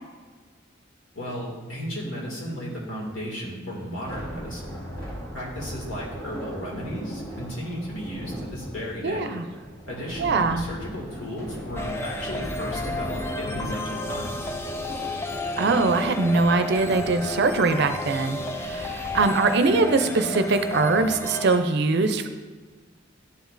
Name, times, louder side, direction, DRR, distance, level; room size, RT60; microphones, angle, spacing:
voice 1, 1.2-4.7 5.3-9.3 9.9-14.3, equal, 80° left, -3 dB, 2.2 m, -34 dB
sound 1, 4.0-19.2, equal, 50° left, 2.1 m, -39 dB
voice 2, 9.0-9.4 10.2-10.6 15.6-22.3, right 3 dB, 55° right, 9 dB, 0.5 m, -22 dB
sound 2, 11.8-21.6, left 2 dB, 10° left, 0.3 m, -32 dB
11.5 x 5.2 x 2.6 m, 1.4 s
head